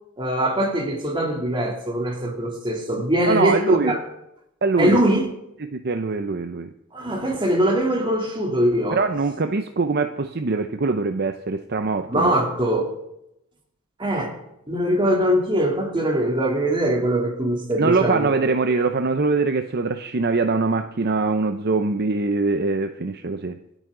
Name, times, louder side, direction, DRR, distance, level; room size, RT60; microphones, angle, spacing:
voice 1, 0.2-4.0 4.8-5.3 6.9-9.0 12.1-12.9 14.0-14.4 14.7-18.3, right 1 dB, 25° right, 1 dB, 3.0 m, -22 dB
voice 2, 3.3-3.9 4.6-5.0 5.6-6.7 8.9-12.3 17.8-23.6, right 4 dB, 50° right, 7 dB, 0.7 m, -23 dB
26.5 x 9.1 x 3.8 m, 0.83 s
head